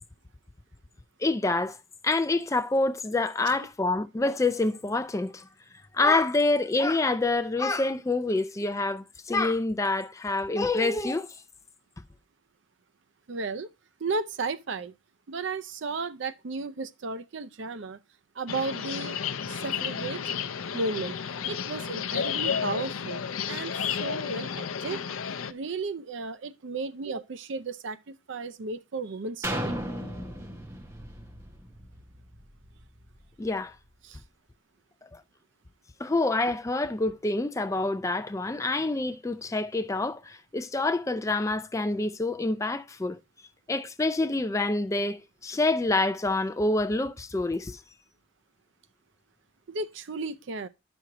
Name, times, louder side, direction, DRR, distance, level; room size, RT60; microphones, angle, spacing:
voice 1, 1.2-1.8 2.0-5.5 5.9-11.4 33.4-33.8 35.1-35.2 36.0-43.2 43.7-47.8, left 2 dB, 15° left, 0.3 m, -27 dB
voice 2, 13.3-13.7 14.0-14.9 15.3-18.0 18.3-19.2 19.5-20.2 20.7-21.2 21.4-25.0 25.5-29.8 34.0-34.2 49.7-50.7, right 3 dB, 60° right, 0.5 m, -34 dB
sound 1, 18.5-25.5, left 7 dB, 85° left, 0.5 m, -32 dB
sound 2, 29.4-33.2 33.7-33.8, equal, 15° right, 0.9 m, -36 dB
10.0 x 6.2 x 2.8 m
head